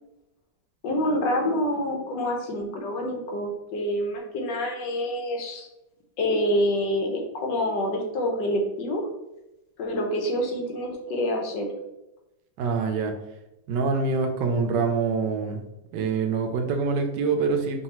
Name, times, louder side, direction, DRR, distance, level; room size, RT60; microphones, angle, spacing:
voice 1, 0.8-5.7 6.2-9.1 9.8-11.7, left 1 dB, 75° left, 1 dB, 1.4 m, -27 dB
voice 2, 12.6-13.1 13.7-15.6 15.9-17.8, right 4 dB, 75° right, 5 dB, 1.2 m, -25 dB
4.7 x 2.7 x 2.9 m, 0.92 s
omnidirectional pair, 2.1 m